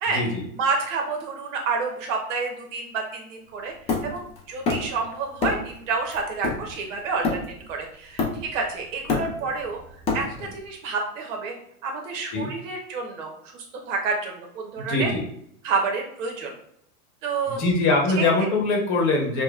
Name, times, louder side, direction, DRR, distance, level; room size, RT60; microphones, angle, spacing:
voice 1, 0.5-3.7 4.0-7.4 7.7-9.8 10.1-11.5 11.8-15.1 15.6-16.5 17.2-17.6 18.2-18.3, right 4 dB, 55° right, 2 dB, 1.0 m, -29 dB
Hammer, 3.9-5.0 5.4-5.8 6.1-7.7 8.2-8.6 8.9-10.6, left 3 dB, 15° left, 0.4 m, -27 dB
voice 2, 14.8-15.2 17.5-19.4, left 3 dB, 40° left, 0 dB, 1.1 m, -22 dB
5.0 x 2.2 x 2.3 m, 0.72 s
hypercardioid pair, 130°, 45 cm